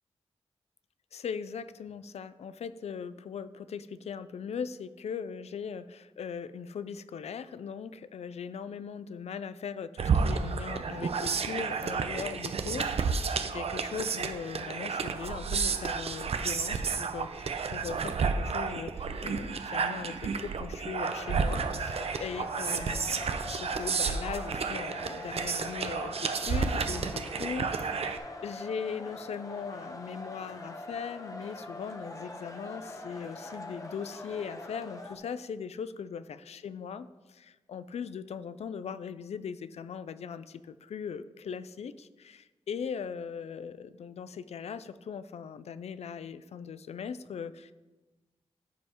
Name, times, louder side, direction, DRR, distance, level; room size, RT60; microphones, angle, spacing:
voice 1, 1.1-47.7, left 6 dB, 85° left, 14 dB, 0.4 m, -39 dB
sound 1, 10.0-28.2, right 5 dB, 70° right, 0.5 m, -31 dB
sound 2, 21.0-35.2, left 2 dB, 30° left, 0.9 m, -43 dB
14.0 x 5.4 x 3.0 m, 1.2 s
wide cardioid pair, 80°, 11 cm